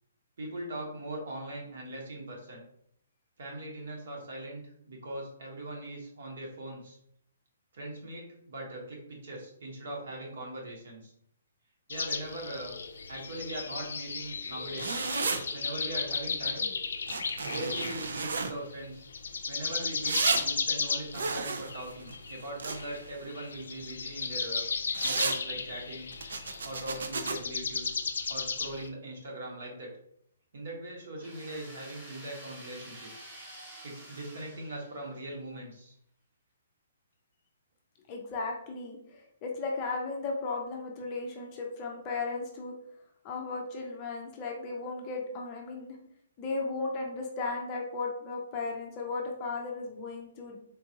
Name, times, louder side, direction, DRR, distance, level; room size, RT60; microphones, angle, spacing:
voice 1, 0.4-2.6 3.4-7.0 7.7-11.1 11.9-12.8 13.1-15.1 15.5-16.7 17.4-19.1 19.5-24.7 25.0-26.1 26.6-28.0 28.3-29.9 30.5-33.3 33.8-35.9, right 1 dB, 60° right, -1 dB, 1.2 m, -40 dB
sound 1, 11.9-18.4 18.7-28.9, left 5 dB, 80° left, 0.4 m, -35 dB
sound 2, 14.8-15.4 17.1-18.5 20.0-20.4 21.1-23.1 24.9-25.4 26.1-27.3, right 4 dB, 80° right, 0.4 m, -32 dB
sound 3, 31.2-35.3, right 1 dB, 20° right, 0.9 m, -49 dB
voice 2, 38.1-42.7 43.2-46.0 46.4-50.6, left 3 dB, 20° left, 0 dB, 0.5 m, -35 dB
3.8 x 2.4 x 2.8 m, 0.69 s
hypercardioid pair, 170°, 0 cm